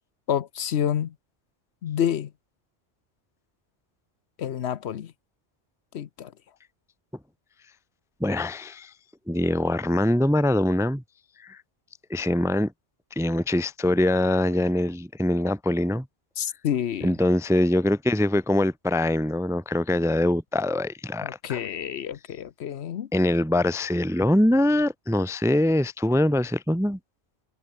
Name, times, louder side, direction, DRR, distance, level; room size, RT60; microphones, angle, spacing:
voice 1, 0.3-1.1 1.8-2.3 4.4-5.1 5.9-6.3 16.4-17.1 21.2-23.1, left 9 dB, 70° left, 1.0 m, -28 dB
voice 2, 8.2-8.9 9.3-11.0 11.4-11.6 12.1-12.7 13.2-16.1 17.0-21.6 23.1-27.0, left 1 dB, 5° right, 0.5 m, -23 dB
omnidirectional pair, 1.2 m